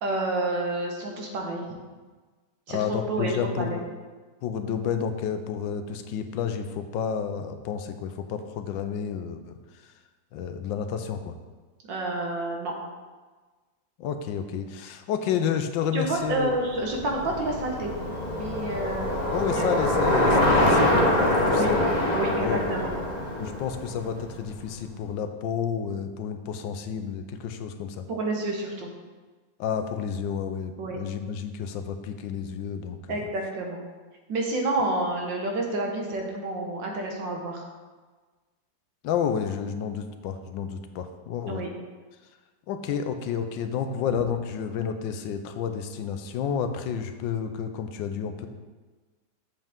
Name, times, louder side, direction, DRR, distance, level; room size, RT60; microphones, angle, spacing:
voice 1, 0.0-1.6 2.7-3.3 3.6-3.8 11.9-12.7 15.9-17.9 18.3-19.2 19.5-19.6 20.6-20.8 21.5-21.7 22.1-22.9 28.1-28.9 30.8-31.0 33.1-33.8 34.3-37.6 41.5-41.7, right 2 dB, 75° right, 1 dB, 2.0 m, -29 dB
voice 2, 2.7-3.9 4.4-9.9 10.3-11.4 14.0-16.5 19.3-21.8 22.4-22.7 23.4-28.1 29.6-33.2 39.0-41.6 42.7-48.5, left 7 dB, 85° left, 8 dB, 1.4 m, -30 dB
Bicycle, 16.3-24.6, left 1 dB, 30° left, 0.9 m, -25 dB
7.7 x 7.2 x 3.6 m, 1.3 s
omnidirectional pair, 2.0 m